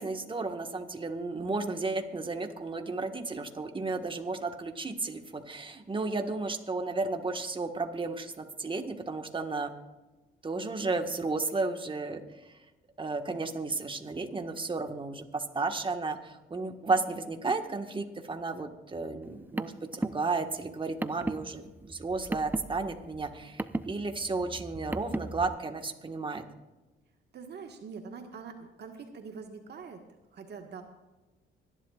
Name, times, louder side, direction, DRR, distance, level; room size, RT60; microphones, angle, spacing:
voice 1, 0.0-9.7 10.4-12.2 13.0-26.4, right 3 dB, 25° right, 5 dB, 1.6 m, -33 dB
Car, 19.2-25.5, right 2 dB, 10° right, 0.5 m, -37 dB
voice 2, 27.3-30.0 30.3-30.8, right 5 dB, 55° right, 4 dB, 1.6 m, -44 dB
25.5 x 11.0 x 2.5 m, 1.1 s
cardioid pair, 90°, 20 cm